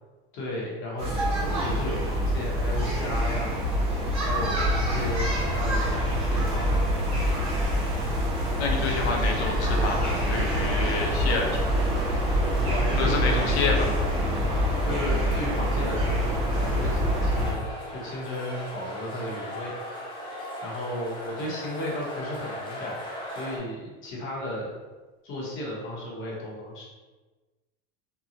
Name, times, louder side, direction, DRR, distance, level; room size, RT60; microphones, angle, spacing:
voice 1, 0.3-3.6 4.2-7.1 12.6-14.0 14.5-19.8 20.6-23.0 23.3-24.7 25.2-26.8, left 1 dB, 40° left, -4 dB, 0.9 m, -34 dB
sound 1, 1.0-17.5, equal, 20° right, 1.0 m, -25 dB
voice 2, 8.6-11.7 13.0-13.9, left 4 dB, 90° left, 1 dB, 0.7 m, -28 dB
sound 2, 11.2-23.6, left 1 dB, 15° left, 0.3 m, -39 dB
2.9 x 2.3 x 2.5 m, 1.2 s
supercardioid pair, 140°, 32 cm